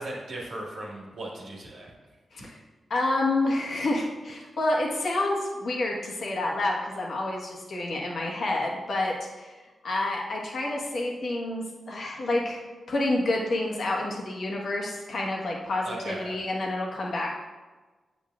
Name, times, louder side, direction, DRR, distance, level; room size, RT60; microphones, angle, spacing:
voice 1, 0.0-1.9 2.4-2.5 15.8-16.4, right 1 dB, 85° right, -4 dB, 1.4 m, -37 dB
voice 2, 2.9-9.5 9.8-12.6 12.9-17.3, left 2 dB, 70° left, -2 dB, 1.3 m, -28 dB
8.2 x 6.4 x 2.4 m, 1.3 s
supercardioid pair, 45°, 0 cm